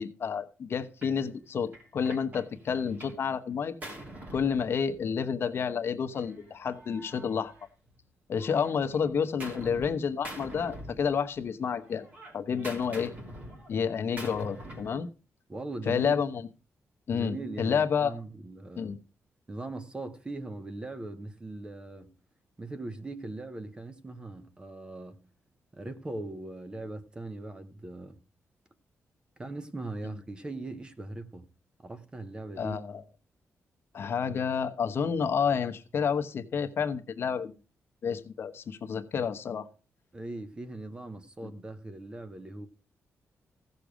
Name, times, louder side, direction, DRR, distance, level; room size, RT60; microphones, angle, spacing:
voice 1, 0.0-3.7 4.3-7.5 8.3-12.1 12.3-13.1 13.7-15.1 15.9-16.4 17.1-18.2 18.8-19.0 32.6-33.0 33.9-37.5 38.0-39.7 41.4-41.5, left 6 dB, 50° left, 0.9 m, -30 dB
Gunshot gunfire, 1.0-1.2 1.7-3.2 3.5-5.2 6.2-8.0 8.4-9.9 10.2-11.5 11.8-15.0, right 1 dB, 35° right, 2.8 m, -45 dB
voice 2, 15.5-16.1 17.1-19.0 19.5-22.1 22.6-25.2 25.7-28.2 29.4-31.5 31.8-32.8 40.1-42.7, right 2 dB, 15° right, 0.8 m, -40 dB
15.5 x 6.7 x 4.9 m
wide cardioid pair, 175°, 5 cm